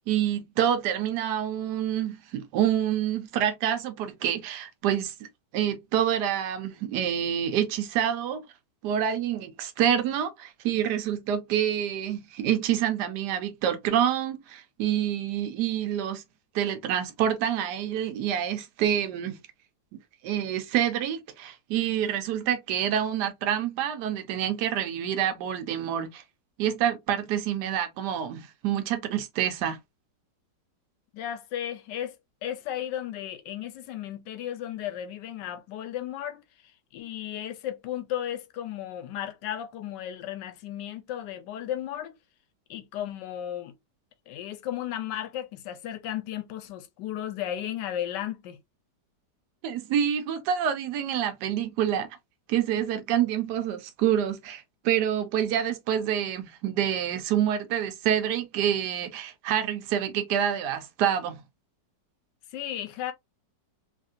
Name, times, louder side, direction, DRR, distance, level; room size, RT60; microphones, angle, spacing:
voice 1, 0.0-5.3 5.5-8.4 8.8-16.2 16.5-19.4 20.2-26.2 26.6-29.8 49.6-52.1 52.5-61.4, right 10 dB, 70° right, 1.2 m, -27 dB
voice 2, 31.1-32.2 32.4-36.4 36.9-42.2 42.7-43.7 44.3-48.6 62.5-63.1, left 11 dB, 80° left, 1.2 m, -34 dB
3.2 x 2.7 x 2.3 m
omnidirectional pair, 1.9 m